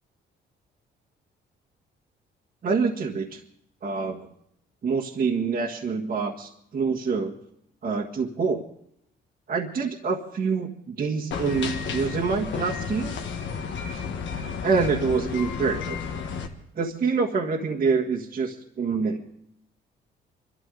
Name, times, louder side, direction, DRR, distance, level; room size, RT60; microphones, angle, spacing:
voice 1, 2.6-3.4 3.8-4.3 4.8-7.3 7.8-8.6 9.5-13.2 14.6-16.0 16.7-19.2, right 5 dB, 50° right, -4 dB, 1.7 m, -26 dB
sound 1, 11.3-16.5, left 6 dB, 70° left, 1.5 m, -32 dB
24.5 x 12.5 x 3.9 m, 0.73 s
cardioid pair, 90°, 20 cm